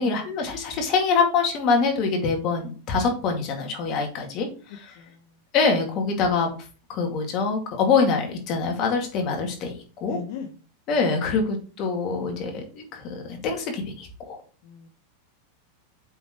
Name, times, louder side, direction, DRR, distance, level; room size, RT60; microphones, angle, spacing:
voice 1, 0.0-5.0 5.5-6.5 6.9-9.7 10.0-10.2 10.9-14.4, left 4 dB, 45° left, 2 dB, 2.2 m, -24 dB
voice 2, 5.0-5.3 10.0-10.5 10.9-11.2 14.6-14.9, left 6 dB, 65° left, 4 dB, 0.9 m, -38 dB
7.8 x 4.4 x 3.1 m, 0.37 s
supercardioid pair, 125°, 0 cm